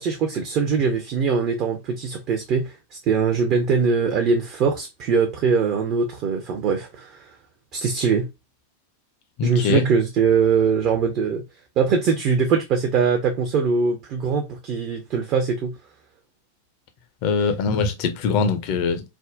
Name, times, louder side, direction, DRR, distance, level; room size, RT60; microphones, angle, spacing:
voice 1, 0.0-7.3 7.7-8.3 9.4-11.4 11.8-15.7, right 5 dB, 40° right, 0.5 m, -22 dB
voice 2, 9.4-9.8 17.2-19.0, left 5 dB, 45° left, 0.5 m, -22 dB
3.4 x 2.1 x 2.4 m
figure-of-eight pair, 90°, 0 cm